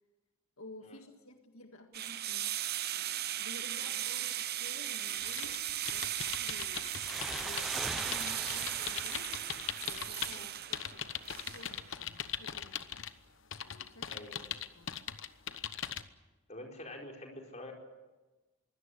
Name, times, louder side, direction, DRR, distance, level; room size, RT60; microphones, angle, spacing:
voice 1, 0.6-6.9 7.4-9.5 9.8-11.1 11.4-12.9 13.6-14.2 14.8-15.0, left 1 dB, 75° left, 5 dB, 1.9 m, -53 dB
sound 1, 1.9-11.9, right 12 dB, 45° right, 0.8 m, -37 dB
sound 2, 5.2-10.4 10.7-13.1 13.5-16.0, left 9 dB, 60° left, 1.0 m, -40 dB
sound 3, 6.9-10.3, equal, ahead, 0.7 m, -42 dB
voice 2, 14.1-14.5 16.5-17.7, left 1 dB, 30° left, 1 dB, 4.5 m, -47 dB
23.0 x 17.0 x 9.9 m, 1.2 s
head